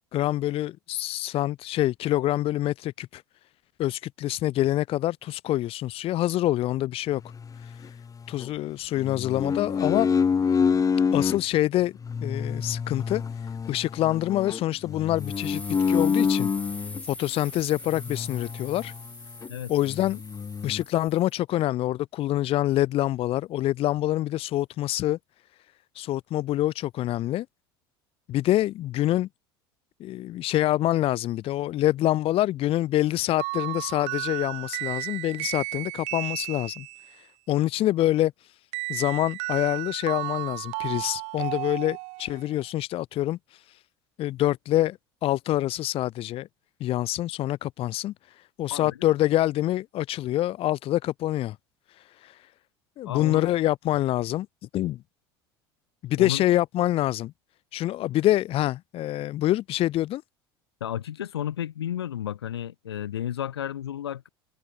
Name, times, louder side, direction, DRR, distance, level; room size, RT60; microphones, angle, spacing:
voice 1, 0.1-3.2 3.8-7.2 7.6-7.8 8.3-10.1 11.1-11.9 12.2-13.2 13.7-15.6 15.9-16.5 17.0-18.9 19.7-20.2 20.6-25.2 25.9-27.5 28.3-29.3 30.0-36.9 37.5-38.3 38.9-43.8 44.2-46.5 46.8-48.1 48.6-51.6 52.2-52.4 53.0-54.5 54.7-55.0 56.0-57.3 57.7-60.2, left 14 dB, 45° left, 0.9 m, -26 dB
sound 1, 7.3-8.5 9.0-11.4 12.0-17.0 17.9-19.1 19.4-19.5 19.9-20.8, left 6 dB, 25° left, 2.1 m, -27 dB
sound 2, 15.2-21.3, left 2 dB, 10° left, 4.7 m, -43 dB
sound 3, 33.4-37.1 38.7-42.5, right 27 dB, 60° right, 2.2 m, -33 dB
voice 2, 53.1-53.5 56.2-56.4 60.8-64.3, left 10 dB, 80° left, 2.5 m, -32 dB
hypercardioid pair, 70°, 13 cm